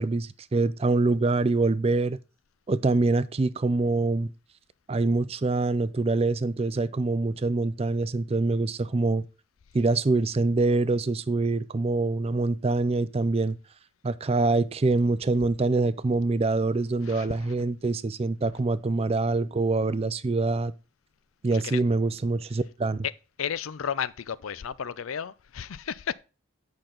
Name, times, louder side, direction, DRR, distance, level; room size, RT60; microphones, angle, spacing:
voice 1, 0.0-2.2 2.7-4.3 4.9-9.2 9.7-13.6 14.0-20.7 21.4-23.1, right 3 dB, 30° right, 0.4 m, -25 dB
voice 2, 17.0-17.5 21.5-21.8 23.0-23.1 23.4-26.1, left 8 dB, 75° left, 0.5 m, -33 dB
8.7 x 6.0 x 3.8 m
head